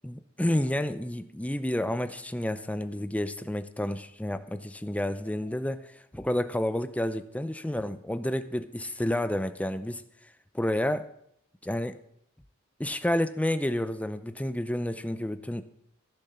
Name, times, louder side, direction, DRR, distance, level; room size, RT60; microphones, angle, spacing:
voice 1, 0.0-10.0 10.5-11.1 11.6-12.0 12.8-15.6, left 1 dB, 5° left, 11 dB, 0.6 m, -30 dB
15.5 x 7.0 x 5.7 m, 0.73 s
head